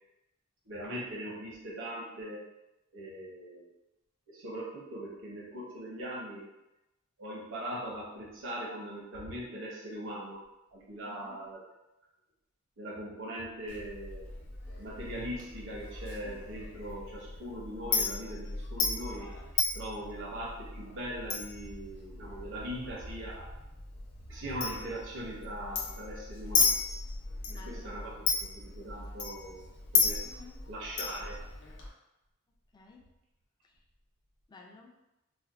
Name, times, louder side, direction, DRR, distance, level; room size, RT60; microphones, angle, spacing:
voice 1, 0.7-2.5 2.9-3.7 4.3-6.5 7.2-10.4 10.7-11.6 12.8-14.3 14.7-19.3 19.7-23.5 24.3-26.8 27.5-29.6 29.9-30.2 30.7-31.4, right 1 dB, 65° right, -4 dB, 0.7 m, -40 dB
voice 2, 11.0-11.4 27.4-28.0 30.2-30.6 32.7-33.0 33.6-33.8 34.5-35.0, left 4 dB, 20° left, 0 dB, 0.3 m, -53 dB
Chink clink, 13.7-31.9, left 4 dB, 60° left, 0.6 m, -35 dB
4.2 x 2.1 x 2.4 m, 0.95 s
head